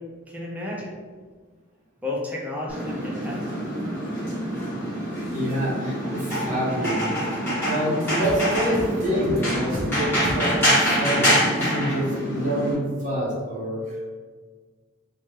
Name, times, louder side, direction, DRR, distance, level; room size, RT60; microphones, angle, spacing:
voice 1, 0.3-1.0 2.0-3.8, left 2 dB, 5° right, -3 dB, 0.5 m, -33 dB
sound 1, 2.7-12.7, equal, 10° left, 1.0 m, -25 dB
voice 2, 5.3-14.1, equal, 40° right, -6 dB, 0.9 m, -27 dB
sound 2, 8.0-9.9 10.2-10.7, equal, 90° right, 0.7 m, -35 dB
2.7 x 2.2 x 3.1 m, 1.5 s
head